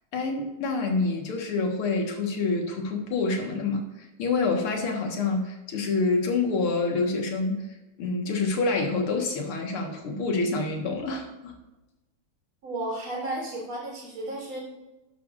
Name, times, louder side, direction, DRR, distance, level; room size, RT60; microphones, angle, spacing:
voice 1, 0.1-7.6 8.0-11.6, left 3 dB, 80° left, 2 dB, 2.3 m, -27 dB
voice 2, 12.6-14.6, right 1 dB, 75° right, -4 dB, 4.3 m, -33 dB
12.5 x 10.0 x 2.5 m, 1.0 s
omnidirectional pair, 2.4 m